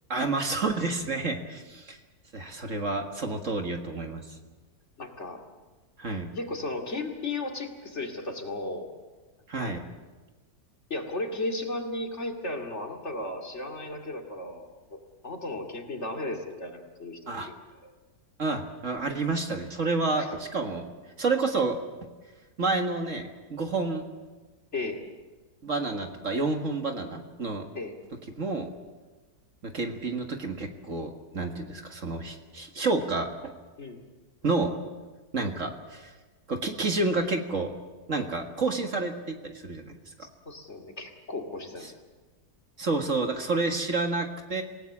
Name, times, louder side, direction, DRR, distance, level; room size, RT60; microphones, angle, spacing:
voice 1, 0.1-2.0 2.3-4.2 6.0-6.3 9.5-9.8 17.3-17.5 18.4-20.9 21.2-21.8 22.6-24.0 25.6-27.7 28.4-28.7 29.6-33.5 34.4-34.7 35.3-36.1 36.5-37.7 38.1-40.1 42.8-44.6, right 3 dB, 45° right, 4 dB, 2.0 m, -29 dB
voice 2, 5.0-5.4 6.3-8.9 9.5-9.7 10.9-17.9 20.2-20.3 24.7-25.0 27.7-27.9 33.8-34.0 40.2-41.9, left 2 dB, 40° left, 3 dB, 2.6 m, -35 dB
27.0 x 18.0 x 7.3 m, 1.3 s
omnidirectional pair, 1.8 m